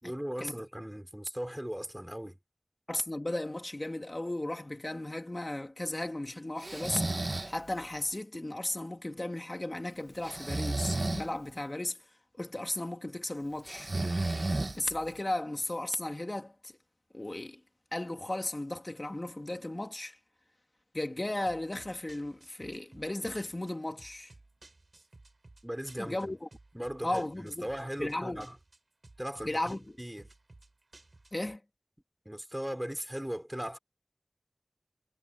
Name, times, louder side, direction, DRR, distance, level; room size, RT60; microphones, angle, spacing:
voice 1, 0.0-2.4 25.6-26.3 26.7-28.6 29.2-30.3 32.2-33.8, equal, 15° right, 4.8 m, -38 dB
voice 2, 2.9-12.0 12.4-13.9 14.7-16.7 17.1-17.6 17.9-20.2 20.9-24.3 26.0-26.5 27.0-27.7 28.0-28.4 29.5-29.8 31.3-31.6, left 1 dB, 50° left, 2.2 m, -35 dB
Breathing, 6.6-7.5 10.2-11.3 13.7-15.1, right 2 dB, 70° right, 1.0 m, -32 dB
sound 1, 21.5-31.6, right 2 dB, 90° right, 4.4 m, -57 dB
wide cardioid pair, 45°, 0 cm